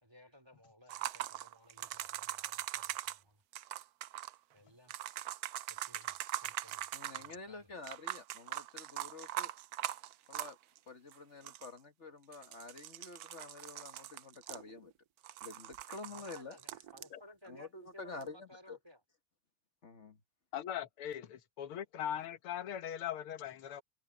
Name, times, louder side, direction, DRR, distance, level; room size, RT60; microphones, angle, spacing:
voice 1, 0.0-3.4 4.5-5.0 5.7-6.8 7.1-7.7 16.1-19.0, left 1 dB, 10° right, 3.2 m, -59 dB
sound 1, 0.9-3.2 3.5-4.4 4.9-7.3 7.8-10.8 11.1-11.2 11.4-11.8 12.3-14.9 15.2-17.1 18.2-18.3, right 13 dB, 85° right, 0.8 m, -42 dB
voice 2, 6.9-9.5 10.3-10.6 10.9-14.9 15.4-16.6 17.4-18.8 19.8-20.2, left 3 dB, 35° left, 1.5 m, -49 dB
voice 3, 20.5-23.8, left 10 dB, 85° left, 2.0 m, -40 dB
open air
omnidirectional pair, 2.3 m